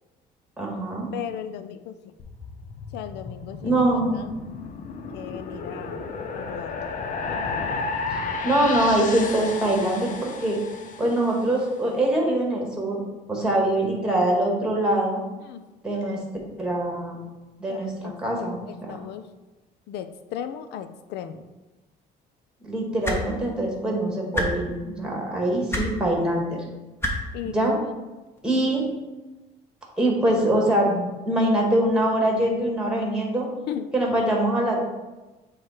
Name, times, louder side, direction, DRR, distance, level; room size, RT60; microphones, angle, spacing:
voice 1, 0.6-1.1 3.6-4.2 8.1-10.6 11.0-13.0 13.3-15.2 15.8-16.2 16.6-17.2 17.6-17.9 18.2-19.0 22.6-26.5 27.4-27.8 28.4-28.8 30.0-33.5 33.9-34.8, right 1 dB, 5° right, -1 dB, 1.9 m, -23 dB
voice 2, 1.1-2.2 2.9-3.9 4.1-4.3 5.1-6.1 6.3-6.9 15.4-15.6 17.7-18.1 18.7-19.3 19.9-21.5 27.3-27.6 27.8-27.9 33.7-33.9, left 9 dB, 80° left, 10 dB, 0.5 m, -36 dB
sound 1, 2.2-11.6, left 4 dB, 50° left, 0.7 m, -33 dB
sound 2, 23.0-23.2 24.3-24.5 25.7-25.9 27.0-27.1 28.4-28.5, equal, 15° left, 1.1 m, -25 dB
7.5 x 3.2 x 4.4 m, 1.1 s
cardioid pair, 110°, 17 cm